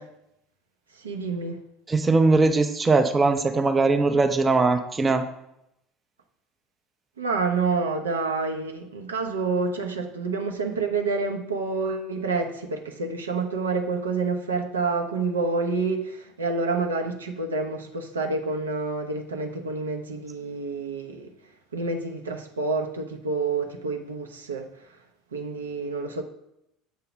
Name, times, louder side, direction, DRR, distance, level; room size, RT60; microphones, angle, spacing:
voice 1, 1.0-1.6 7.2-21.3 21.7-24.7 25.3-26.2, right 4 dB, 75° right, 3 dB, 0.7 m, -28 dB
voice 2, 1.9-5.3, right 3 dB, 20° right, 7 dB, 0.5 m, -20 dB
7.1 x 2.9 x 5.9 m, 0.82 s
figure-of-eight pair, 70°, 0 cm